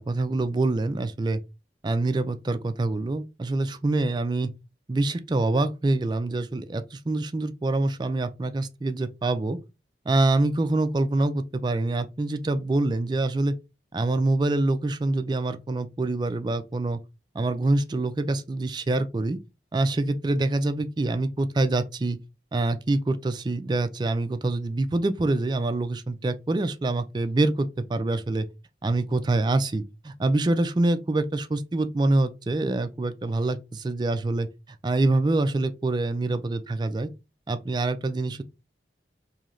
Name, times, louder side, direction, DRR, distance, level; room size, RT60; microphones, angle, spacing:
voice 1, 0.0-1.4 1.8-4.5 4.9-9.6 10.1-13.5 13.9-17.0 17.3-19.4 19.7-22.2 22.5-28.5 28.8-34.5 34.8-37.1 37.5-38.4, right 2 dB, 25° right, 0.3 m, -25 dB
3.1 x 2.7 x 3.8 m
head